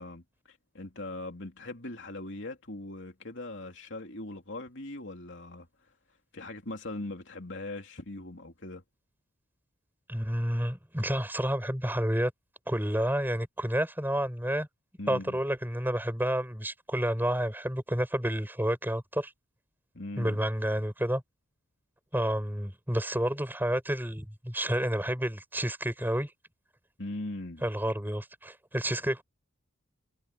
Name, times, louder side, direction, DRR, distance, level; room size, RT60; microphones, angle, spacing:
voice 1, 0.0-5.7 6.3-8.8 15.0-15.4 19.9-20.4 27.0-27.6, left 2 dB, 60° left, 3.2 m, -40 dB
voice 2, 10.1-12.3 12.7-14.7 15.1-19.3 20.2-21.2 22.1-26.3 27.6-29.2, equal, 10° right, 6.9 m, -30 dB
head